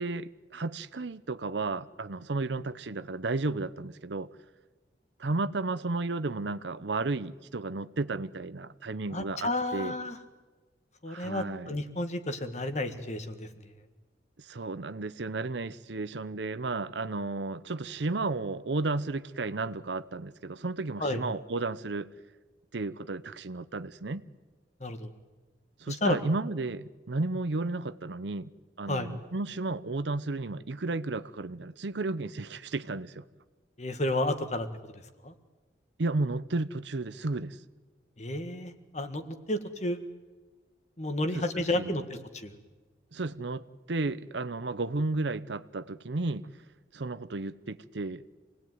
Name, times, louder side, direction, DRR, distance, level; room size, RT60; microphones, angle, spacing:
voice 1, 0.0-4.3 5.2-10.0 11.1-11.7 14.4-22.1 22.7-24.2 25.8-28.5 28.8-33.2 36.0-37.6 41.3-42.1 43.1-46.5 46.9-48.2, right 3 dB, 75° right, 0.8 m, -33 dB
voice 2, 9.1-10.2 11.0-13.5 21.0-21.2 24.8-25.1 25.9-26.2 28.9-29.1 33.8-34.7 34.9-35.3 38.2-40.0 41.0-42.6, left 1 dB, 40° left, 1.7 m, -32 dB
27.0 x 18.5 x 9.3 m
head